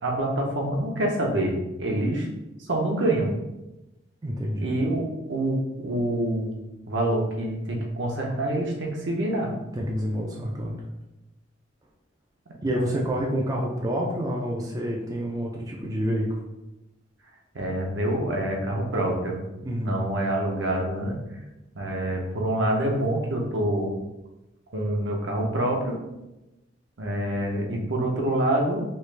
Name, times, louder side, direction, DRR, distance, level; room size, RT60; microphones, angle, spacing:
voice 1, 0.0-2.3 2.6-3.3 4.6-6.6 6.9-9.5 12.7-13.0 17.5-19.4 19.8-21.2 21.7-23.9 24.7-26.0 27.0-28.8, right 1 dB, 70° right, 0 dB, 0.7 m, -26 dB
voice 2, 4.2-4.7 9.7-10.8 12.6-16.3 19.6-19.9, equal, 20° right, -2 dB, 0.3 m, -28 dB
3.1 x 2.4 x 3.2 m, 0.97 s
head